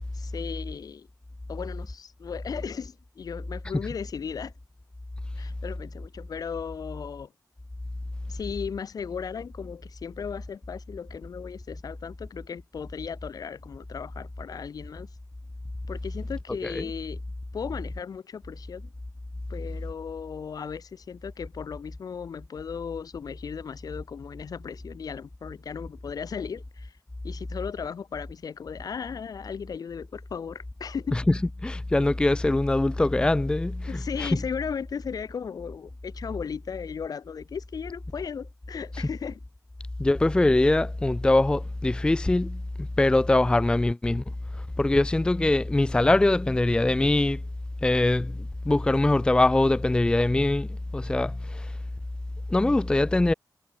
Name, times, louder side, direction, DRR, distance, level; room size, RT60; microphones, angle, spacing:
voice 1, 0.1-1.1 1.5-4.5 5.4-7.3 8.3-15.1 15.9-17.2 17.5-18.9 19.5-26.9 27.2-31.2 33.9-39.4, left 6 dB, 60° left, 1.5 m, -36 dB
voice 2, 31.6-34.3 40.0-44.2 44.8-47.4 47.8-50.7 50.9-51.7 52.5-53.3, left 2 dB, 15° left, 0.7 m, -23 dB
wide cardioid pair, 155°, 7 cm